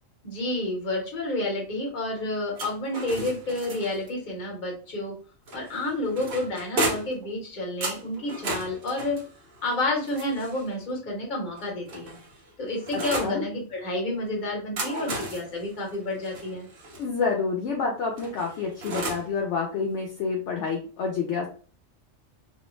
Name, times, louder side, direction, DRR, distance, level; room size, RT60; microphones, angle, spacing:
voice 1, 0.2-5.1 5.5-9.2 9.6-12.2 12.6-16.7, left 2 dB, 40° left, -1 dB, 1.0 m, -30 dB
sound 1, 2.5-4.1 5.5-7.2 7.8-10.7 11.5-13.4 14.5-17.0 18.2-19.3, right 1 dB, 50° right, 0.8 m, -34 dB
voice 2, 12.9-13.5 17.0-21.5, left 5 dB, 70° left, -1 dB, 0.8 m, -28 dB
2.6 x 2.1 x 3.0 m, 0.40 s
omnidirectional pair, 1.3 m